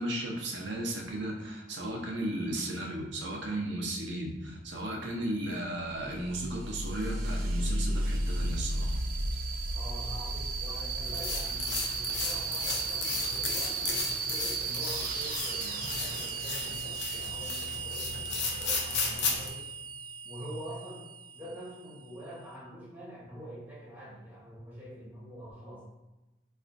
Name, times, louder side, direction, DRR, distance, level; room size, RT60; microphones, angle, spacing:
voice 1, 0.0-9.0, right 1 dB, 90° right, 1 dB, 0.7 m, -35 dB
sound 1, 6.0-22.4, right 3 dB, 55° right, 0.4 m, -35 dB
voice 2, 9.7-13.9 14.3-19.7 20.2-25.8, right 1 dB, 10° right, -8 dB, 1.0 m, -45 dB
sound 2, 11.0-19.5, left 4 dB, 75° left, 0.6 m, -35 dB
4.1 x 2.4 x 2.5 m, 1.0 s
head